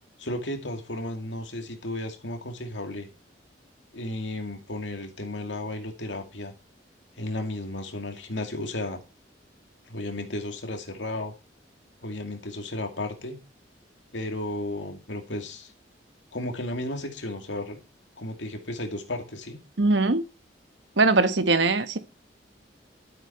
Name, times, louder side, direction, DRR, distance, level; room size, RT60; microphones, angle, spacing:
voice 1, 0.2-3.1 3.9-6.5 7.2-9.0 9.9-11.3 12.0-13.4 14.1-15.7 16.3-17.8 18.2-19.6, left 1 dB, 85° left, 2.3 m, -34 dB
voice 2, 19.8-20.2 21.0-22.0, right 3 dB, 80° right, 1.3 m, -21 dB
12.5 x 8.2 x 4.3 m
head